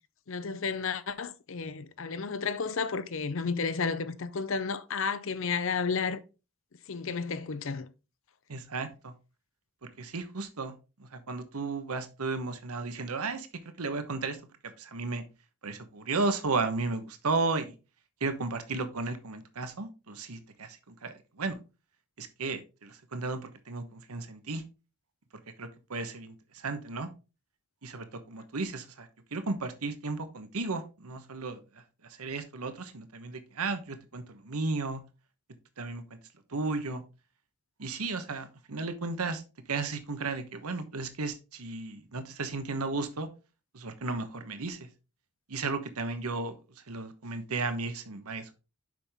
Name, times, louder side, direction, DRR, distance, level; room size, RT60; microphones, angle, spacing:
voice 1, 0.3-6.2 6.9-7.9, left 5 dB, 60° left, 0.6 m, -32 dB
voice 2, 8.5-9.1 10.0-10.7 11.0-13.5 13.8-14.4 14.8-15.2 15.6-17.7 18.2-21.6 22.2-24.6 25.6-27.1 27.8-31.6 32.2-35.0 35.8-36.0 36.5-37.0 37.8-39.4 39.7-43.3 43.7-44.9 45.5-46.5 46.9-48.6, right 3 dB, 85° right, 1.1 m, -34 dB
7.4 x 5.8 x 3.5 m
head